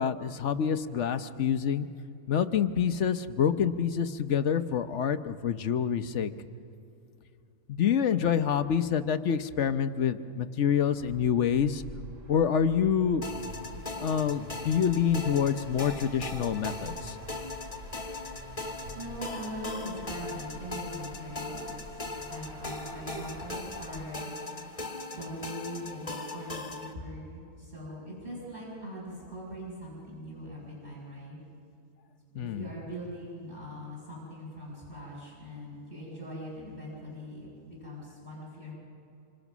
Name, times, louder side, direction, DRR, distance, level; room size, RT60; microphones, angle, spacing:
voice 1, 0.0-1.9 2.3-6.3 7.7-11.8 12.3-13.3 14.0-17.2 32.3-32.7, left 8 dB, 60° left, 11 dB, 1.0 m, -27 dB
sound 1, 11.0-24.0, equal, 60° right, 2.4 m, -48 dB
sound 2, 13.2-26.9, left 2 dB, 25° left, 1.7 m, -39 dB
voice 2, 18.9-22.0 22.3-24.6 25.1-31.4 32.3-38.7, equal, 30° right, -5 dB, 6.4 m, -41 dB
27.0 x 26.0 x 6.1 m, 2.7 s
omnidirectional pair, 1.5 m